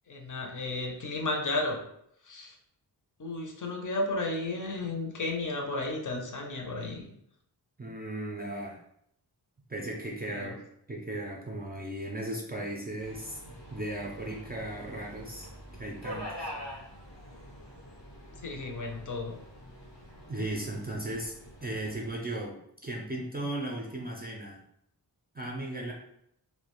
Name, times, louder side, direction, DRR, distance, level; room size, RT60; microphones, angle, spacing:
voice 1, 0.1-1.8 2.2-2.6 3.2-7.1 10.3-10.5 18.4-19.4, left 2 dB, 45° left, 1 dB, 0.5 m, -33 dB
voice 2, 7.8-8.8 9.7-10.6 10.9-16.5 20.3-21.3 21.6-24.6 25.3-25.9, right 1 dB, 25° right, -1 dB, 0.3 m, -36 dB
Subway metro underground, 13.0-22.2, equal, 90° left, 1.0 m, -45 dB
2.3 x 2.1 x 2.9 m, 0.73 s
wide cardioid pair, 85°, 43 cm